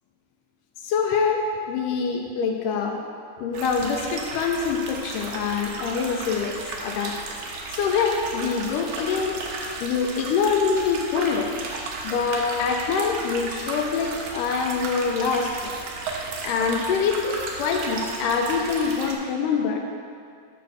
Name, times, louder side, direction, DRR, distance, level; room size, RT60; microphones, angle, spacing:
voice 1, 0.8-3.0 3.4-9.4 9.8-11.6 12.0-15.7 16.4-19.8, left 5 dB, 80° left, 3 dB, 2.1 m, -25 dB
sound 1, 3.5-19.1, right 3 dB, 70° right, 2.2 m, -34 dB
7.2 x 5.9 x 6.3 m, 2.3 s
omnidirectional pair, 4.0 m